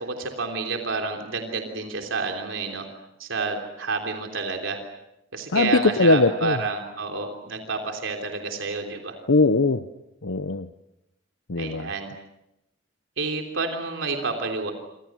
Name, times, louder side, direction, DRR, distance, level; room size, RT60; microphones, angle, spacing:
voice 1, 0.0-2.9 3.2-4.8 5.3-9.2 11.6-12.1 13.2-14.7, right 4 dB, 80° right, 3 dB, 3.3 m, -29 dB
voice 2, 5.5-6.6 9.3-9.8 10.2-10.7 11.5-11.9, left 3 dB, 80° left, 10 dB, 0.9 m, -20 dB
28.0 x 26.0 x 6.4 m, 0.87 s
head